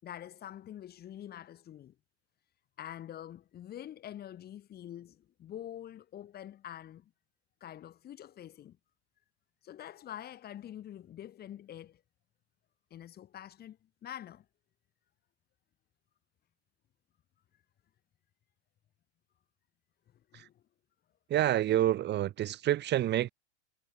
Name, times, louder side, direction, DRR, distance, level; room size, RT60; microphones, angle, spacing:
voice 1, 0.0-2.0 2.8-7.1 7.6-8.8 9.6-12.0 12.9-14.5 20.1-20.6 21.7-21.8, left 11 dB, 25° left, 5.3 m, -46 dB
voice 2, 21.3-23.3, right 13 dB, 30° right, 3.8 m, -28 dB
supercardioid pair, 140°, 34 cm